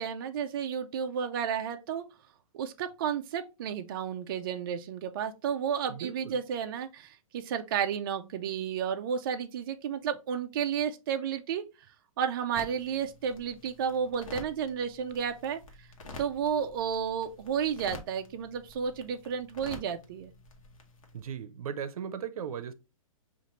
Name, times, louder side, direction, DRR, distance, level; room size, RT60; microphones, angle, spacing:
voice 1, 0.0-2.0 2.5-11.6 12.2-15.6 16.2-20.3, right 7 dB, 40° right, 0.4 m, -32 dB
voice 2, 5.9-6.3 21.1-22.7, right 8 dB, 90° right, 0.5 m, -37 dB
sound 1, 12.5-21.2, left 2 dB, 70° left, 1.1 m, -49 dB
5.2 x 2.5 x 2.9 m
hypercardioid pair, 165°, 18 cm